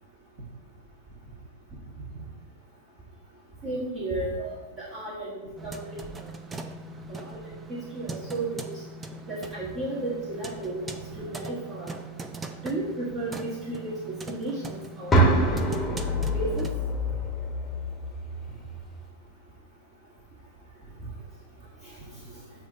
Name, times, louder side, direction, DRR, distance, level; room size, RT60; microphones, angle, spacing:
voice 1, 3.6-6.0 7.1-7.4 7.7-8.7 9.3-10.9 11.1-11.9 12.6-16.6 21.8-21.9, right 2 dB, 35° right, -6 dB, 1.7 m, -34 dB
sound 1, 5.6-16.7, right 3 dB, 15° right, 0.5 m, -40 dB
sound 2, 15.1-19.1, right 1 dB, 10° left, 1.0 m, -26 dB
8.4 x 2.9 x 5.1 m, 1.1 s
hypercardioid pair, 130°, 0 cm